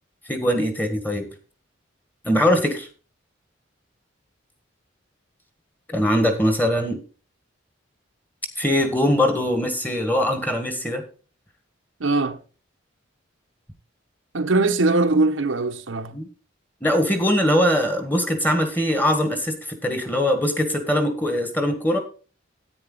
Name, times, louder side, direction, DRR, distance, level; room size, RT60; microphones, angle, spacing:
voice 1, 0.3-1.3 2.2-2.9 5.9-7.0 8.6-11.0 16.1-16.3 16.8-22.0, equal, 10° left, 1.5 m, -21 dB
voice 2, 12.0-12.4 14.3-16.1, right 3 dB, 75° right, 0.9 m, -21 dB
10.0 x 9.1 x 3.9 m
head